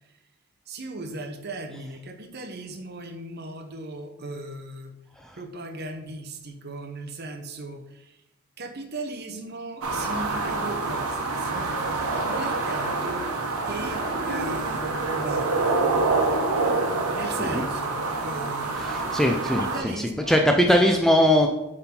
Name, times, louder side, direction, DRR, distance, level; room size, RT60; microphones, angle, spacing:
voice 1, 0.7-4.9 5.3-8.2 8.6-13.3 13.7-15.8 17.1-20.5, right 2 dB, 45° right, 6 dB, 0.8 m, -37 dB
sound 1, 9.8-19.8, right 3 dB, 90° right, 1.1 m, -26 dB
voice 2, 18.9-21.5, equal, ahead, 3 dB, 0.3 m, -21 dB
7.7 x 3.8 x 4.4 m, 0.92 s
head